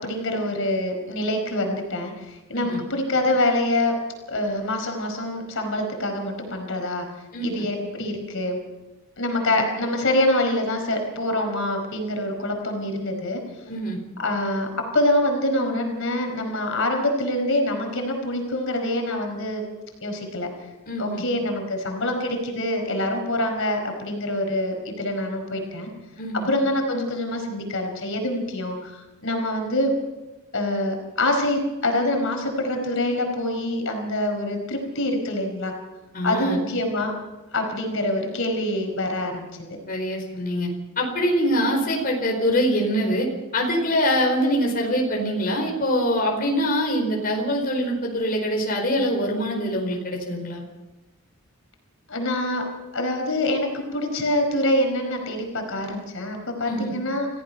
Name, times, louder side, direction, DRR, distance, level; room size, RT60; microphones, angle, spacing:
voice 1, 0.0-3.9 4.3-7.0 7.4-8.6 9.2-13.4 14.2-14.7 14.9-19.6 20.0-20.5 21.0-25.9 26.5-29.9 30.5-35.7 36.2-37.1 37.5-39.5 52.1-52.6 52.9-57.3, left 1 dB, 65° left, 3 dB, 4.8 m, -25 dB
voice 2, 7.3-7.6 9.5-9.6 13.7-14.0 20.9-21.2 26.2-26.5 36.1-36.6 39.9-40.7 41.0-43.3 43.5-50.6 56.7-56.9, equal, 45° left, 0 dB, 4.6 m, -24 dB
30.0 x 15.5 x 5.8 m, 1.1 s
head